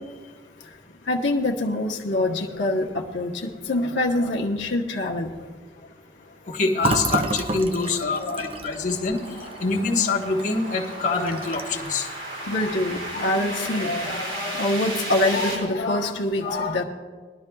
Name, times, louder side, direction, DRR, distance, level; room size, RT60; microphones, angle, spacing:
voice 1, 1.1-5.3 8.1-8.5 12.4-16.8, left 2 dB, 90° left, 0 dB, 1.0 m, -25 dB
voice 2, 6.5-9.2 9.6-12.1, left 3 dB, 45° left, -2 dB, 1.3 m, -25 dB
sound 1, 6.5-15.6, right 1 dB, 60° right, 3.9 m, -36 dB
Fill (with liquid), 6.8-10.5 10.8-10.9 11.3-11.9, right 2 dB, 30° right, 0.6 m, -29 dB
21.0 x 12.0 x 2.3 m, 1.5 s
head